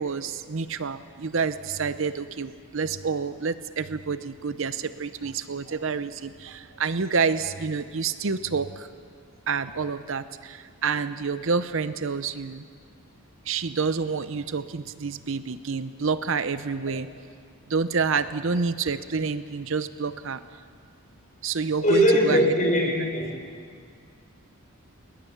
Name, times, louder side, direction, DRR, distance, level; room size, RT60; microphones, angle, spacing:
voice 1, 0.0-8.9 9.5-12.6 13.5-17.1 17.7-20.4 21.4-22.5, right 5 dB, 60° right, 13 dB, 0.6 m, -28 dB
voice 2, 21.8-23.3, equal, 35° left, 0 dB, 4.5 m, -20 dB
20.5 x 20.0 x 7.3 m, 2.1 s
head